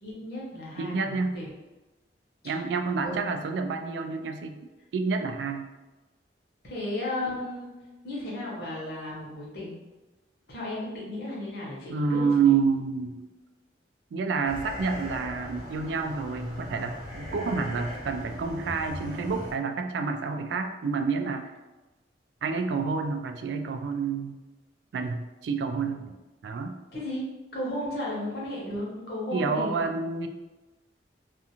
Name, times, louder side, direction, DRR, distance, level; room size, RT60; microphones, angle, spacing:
voice 1, 0.0-1.5 3.0-3.3 6.6-7.7 8.0-9.8 10.5-12.6 26.9-27.2 27.5-29.9, left 1 dB, 60° left, -4 dB, 0.9 m, -34 dB
voice 2, 0.8-1.4 2.4-4.6 4.9-5.7 11.9-13.2 14.1-21.5 22.4-24.4 24.9-26.2 26.4-26.7 29.3-30.3, right 5 dB, 80° right, 6 dB, 0.3 m, -28 dB
sound 1, 14.4-19.5, equal, 40° right, 0.7 m, -39 dB
2.5 x 2.4 x 2.8 m, 1.1 s
head